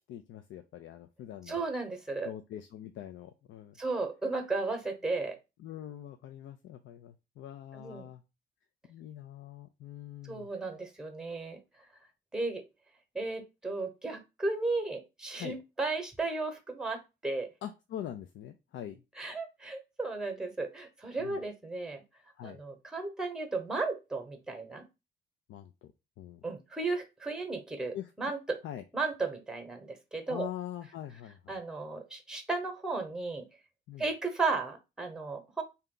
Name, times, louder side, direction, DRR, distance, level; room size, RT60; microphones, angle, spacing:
voice 1, 0.1-1.6 2.2-3.8 5.6-8.2 8.8-10.8 15.4-15.6 17.6-19.0 21.2-21.4 22.4-22.6 25.5-25.9 26.2-26.5 27.9-28.3 28.6-28.8 30.3-31.5 33.9-34.1, left 11 dB, 75° left, 8 dB, 0.5 m, -43 dB
voice 2, 1.5-2.3 3.8-5.4 7.7-8.1 10.3-11.6 12.3-12.6 13.1-17.5 19.2-22.0 22.4-24.8 26.4-28.6 28.9-30.5 31.5-33.4 34.0-35.6, right 3 dB, 5° right, 6 dB, 1.0 m, -34 dB
3.3 x 2.8 x 3.8 m, 0.26 s
cardioid pair, 90°, 20 cm